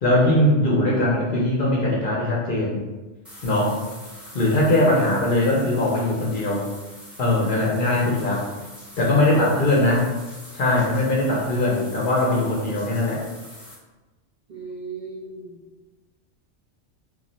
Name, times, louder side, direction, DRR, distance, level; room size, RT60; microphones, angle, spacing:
voice 1, 0.0-2.8 3.4-3.8 4.3-6.6 7.2-8.4 9.0-10.0 10.5-13.2, left 1 dB, 55° left, -4 dB, 0.6 m, -20 dB
sound 1, 3.2-13.7, equal, ahead, 0.5 m, -44 dB
voice 2, 9.3-9.8 14.5-15.6, right 3 dB, 55° right, -6 dB, 0.5 m, -38 dB
2.3 x 2.0 x 3.8 m, 1.2 s
omnidirectional pair, 1.2 m